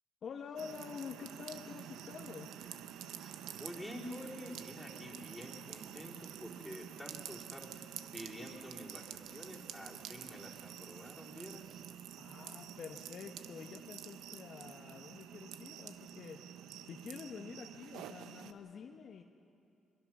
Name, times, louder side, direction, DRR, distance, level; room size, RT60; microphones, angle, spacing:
voice 1, 0.2-2.5 12.2-16.4 16.8-19.2, left 6 dB, 60° left, 2 dB, 1.1 m, -48 dB
sound 1, 0.6-18.5, right 10 dB, 90° right, 0.8 m, -49 dB
voice 2, 3.1-11.8, equal, 5° left, -3 dB, 3.7 m, -48 dB
23.5 x 22.5 x 6.1 m, 2.6 s
cardioid pair, 90°, 0 cm